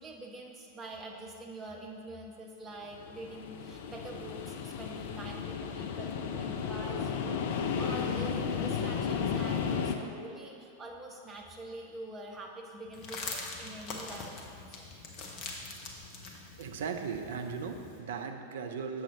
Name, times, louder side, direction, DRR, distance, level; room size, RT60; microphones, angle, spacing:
voice 1, 0.0-14.8, right 1 dB, 20° right, -1 dB, 1.0 m, -45 dB
sound 1, 2.9-10.0, left 6 dB, 50° left, 0.5 m, -33 dB
sound 2, 12.9-18.0, left 3 dB, 35° left, 1.0 m, -43 dB
voice 2, 16.6-19.0, right 6 dB, 60° right, 6 dB, 0.5 m, -37 dB
7.5 x 6.3 x 3.7 m, 2.5 s
figure-of-eight pair, 90°, 0 cm